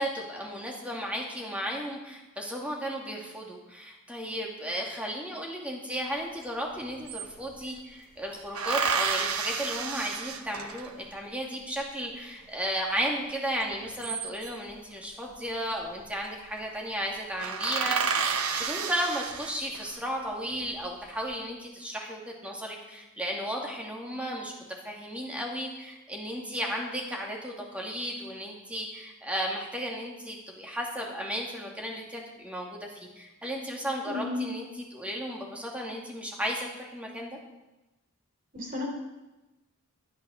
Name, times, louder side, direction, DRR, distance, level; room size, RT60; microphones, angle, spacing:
voice 1, 0.0-24.5 24.8-37.4, equal, 5° right, -1 dB, 2.5 m, -34 dB
sound 1, 6.4-6.5 6.7-7.8 8.5-11.1 13.7-14.7 15.9-16.3 16.6-16.7 17.0-17.1 17.4-19.9 20.5-21.2, right 5 dB, 80° right, 1.2 m, -31 dB
voice 2, 34.1-34.4 38.5-38.8, left 2 dB, 40° right, -1 dB, 3.9 m, -32 dB
12.5 x 11.5 x 6.5 m, 1.0 s
head